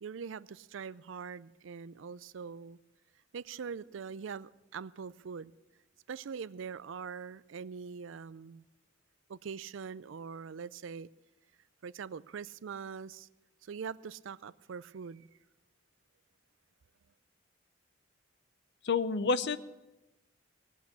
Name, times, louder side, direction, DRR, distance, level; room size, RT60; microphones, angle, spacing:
voice 1, 0.0-2.8 3.3-5.5 6.1-8.7 9.3-11.1 11.8-13.3 13.6-15.3, right 6 dB, 65° right, 0.4 m, -43 dB
voice 2, 18.8-19.6, left 4 dB, 60° left, 0.7 m, -29 dB
18.0 x 8.3 x 8.4 m
head